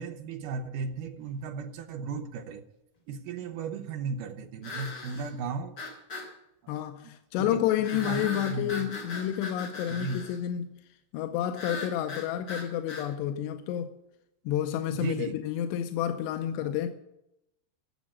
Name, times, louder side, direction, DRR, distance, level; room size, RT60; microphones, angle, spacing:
voice 1, 0.0-2.6 3.1-5.7 8.0-8.2 8.5-8.7 10.0-10.2 15.0-15.3, right 5 dB, 75° right, 2.0 m, -35 dB
sound 1, 1.0-1.1 4.6-5.3 5.8-6.3 7.8-10.4 11.5-13.1, left 3 dB, 40° left, 1.5 m, -39 dB
voice 2, 6.7-10.8 11.1-14.0 14.5-16.9, left 11 dB, 90° left, 2.8 m, -30 dB
13.5 x 7.3 x 8.8 m
omnidirectional pair, 4.8 m